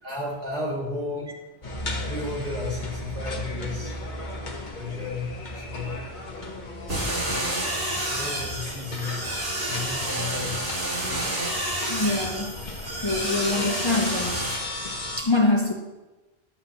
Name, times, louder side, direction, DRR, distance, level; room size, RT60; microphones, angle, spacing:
voice 1, 0.0-1.3 2.1-4.0 4.8-6.0 8.1-9.4 9.6-10.8, left 2 dB, 60° right, -5 dB, 2.6 m, -33 dB
sound 1, 1.6-15.2, left 2 dB, 45° left, 1.2 m, -36 dB
sound 2, 6.9-14.5, right 1 dB, 80° right, 2.8 m, -29 dB
voice 2, 11.9-12.6 13.0-14.5 15.2-15.7, left 2 dB, 30° left, -1 dB, 0.9 m, -24 dB
11.5 x 7.6 x 2.9 m, 1.1 s
omnidirectional pair, 1.1 m